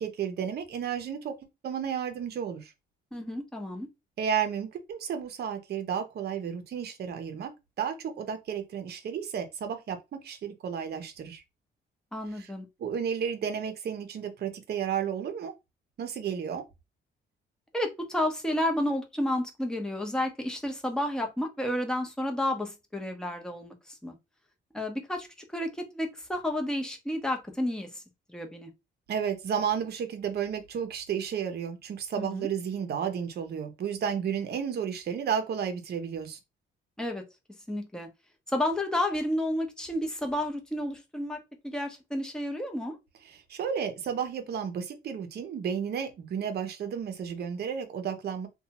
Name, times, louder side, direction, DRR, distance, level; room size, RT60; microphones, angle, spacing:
voice 1, 0.0-1.3 1.6-2.7 4.2-7.5 7.8-11.4 12.3-12.5 12.8-15.5 16.0-16.6 29.1-36.4 43.3-48.5, right 7 dB, 55° right, 0.7 m, -32 dB
voice 2, 3.1-3.9 12.1-12.7 17.7-24.1 24.7-25.3 25.5-28.0 28.3-28.7 32.2-32.5 37.0-37.2 37.7-38.1 38.5-41.4 41.6-43.0, left 1 dB, 5° left, 0.8 m, -31 dB
2.7 x 2.3 x 2.8 m
cardioid pair, 90°, 20 cm